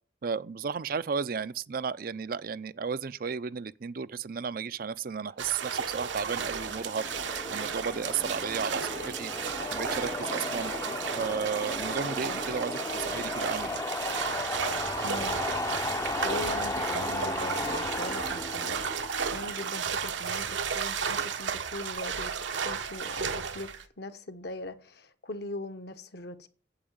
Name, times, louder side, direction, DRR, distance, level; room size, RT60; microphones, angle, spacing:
voice 1, 0.2-7.1 7.5-10.7 11.2-13.8, right 6 dB, 50° right, 0.5 m, -34 dB
sound 1, 5.4-23.8, right 6 dB, 85° right, 1.1 m, -34 dB
sound 2, 5.8-20.1, left 2 dB, 20° left, 0.6 m, -35 dB
voice 2, 15.0-15.4 16.2-18.8 19.3-22.3 22.6-26.5, left 1 dB, 60° left, 1.1 m, -40 dB
8.8 x 7.9 x 8.9 m
head